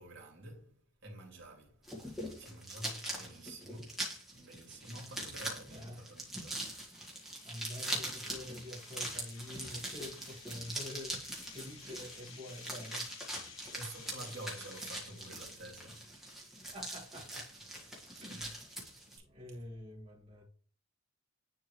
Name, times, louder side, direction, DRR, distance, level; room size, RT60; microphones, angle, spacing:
voice 1, 0.0-4.1 4.3-6.7 13.6-16.7 17.5-17.6 18.3-18.6 19.1-19.2 19.5-19.6, right 1 dB, 55° right, 2.6 m, -50 dB
sound 1, 1.8-19.2, right 1 dB, ahead, 1.7 m, -42 dB
sound 2, 5.9-6.0 6.5-6.6 7.1-15.4, left 6 dB, 70° left, 1.4 m, -55 dB
voice 2, 7.4-13.1 16.6-17.5 18.2-18.5 19.1-20.4, left 1 dB, 30° right, 1.8 m, -47 dB
10.0 x 3.6 x 3.1 m
head